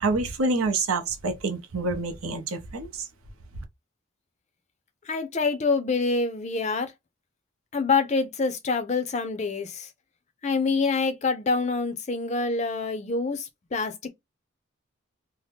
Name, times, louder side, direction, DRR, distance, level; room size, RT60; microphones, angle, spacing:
voice 1, 0.0-3.1 3.5-3.6, right 3 dB, 90° right, 0.7 m, -27 dB
voice 2, 5.1-6.9 7.7-9.9 10.4-14.1, left 4 dB, 35° left, 0.4 m, -26 dB
2.7 x 2.1 x 3.3 m
head